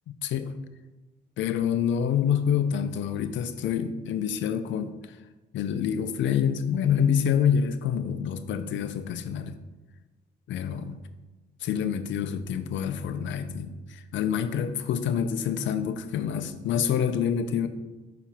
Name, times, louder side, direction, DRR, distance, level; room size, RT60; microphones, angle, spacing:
voice 1, 0.2-0.5 1.4-5.2 5.5-9.6 10.5-11.0 11.6-17.7, left 8 dB, 70° left, 11 dB, 0.5 m, -27 dB
6.0 x 4.1 x 4.2 m, 1.2 s
cardioid pair, 90°, 20 cm